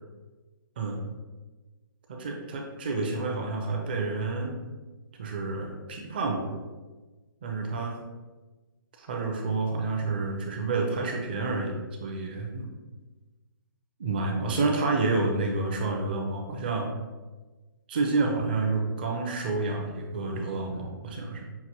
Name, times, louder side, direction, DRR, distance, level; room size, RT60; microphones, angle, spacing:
voice 1, 2.1-4.5 5.2-6.5 7.4-7.9 9.0-12.7 14.0-16.9 17.9-21.4, right 3 dB, 25° right, 1 dB, 0.5 m, -29 dB
5.8 x 2.5 x 2.9 m, 1.2 s
hypercardioid pair, 175°, 12 cm